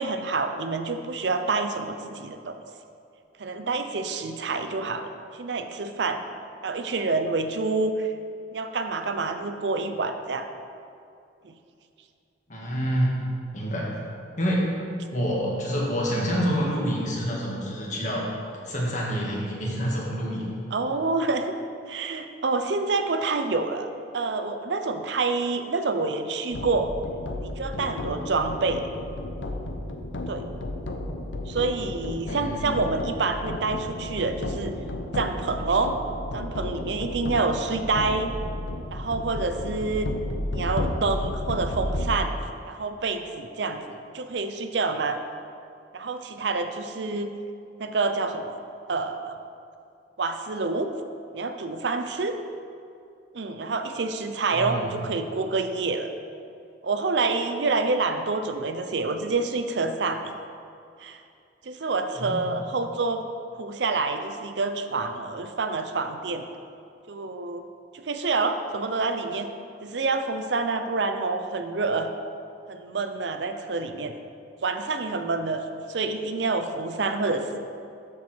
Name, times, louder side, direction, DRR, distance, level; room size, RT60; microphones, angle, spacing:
voice 1, 0.0-2.6 3.4-6.2 6.6-8.1 8.5-10.5 11.4-11.5 20.7-21.5 21.9-23.9 24.1-26.9 27.4-28.9 30.3-30.5 31.5-34.7 35.1-35.9 36.3-38.3 38.9-40.1 40.5-42.4 42.7-45.2 45.9-47.3 47.8-48.6 48.9-49.4 50.2-51.0 51.3-52.4 53.3-56.1 56.8-60.3 61.0-61.2 61.6-63.3 63.6-66.5 67.1-67.6 67.9-69.5 69.8-72.1 72.7-74.1 74.6-75.6 75.9-77.6, right 3 dB, 65° right, 8 dB, 0.6 m, -27 dB
voice 2, 12.5-13.2 13.5-14.0 14.4-14.8 15.1-18.2 18.6-20.6 32.3-32.7 54.5-54.8 62.2-62.5, equal, 40° left, -4 dB, 1.8 m, -27 dB
sound 1, 26.5-42.2, left 1 dB, 80° left, 0.7 m, -33 dB
13.0 x 4.7 x 4.4 m, 2.5 s
head